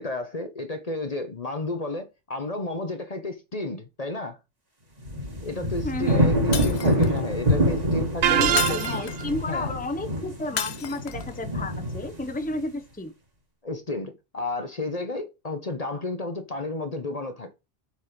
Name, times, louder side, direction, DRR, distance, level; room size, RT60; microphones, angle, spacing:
voice 1, 0.0-4.4 5.4-8.8 9.5-9.7 13.6-17.5, left 2 dB, 35° left, 1.0 m, -32 dB
sound 1, 5.0-12.5, equal, 35° right, 1.9 m, -26 dB
voice 2, 5.8-6.4 8.3-13.1, left 2 dB, 10° left, 0.8 m, -32 dB
Shatter, 6.5-7.3 8.6-9.4 10.6-11.3, left 8 dB, 70° left, 1.0 m, -32 dB
sound 2, 8.2-9.3, right 10 dB, 90° right, 1.0 m, -23 dB
7.7 x 4.3 x 5.2 m
omnidirectional pair, 1.1 m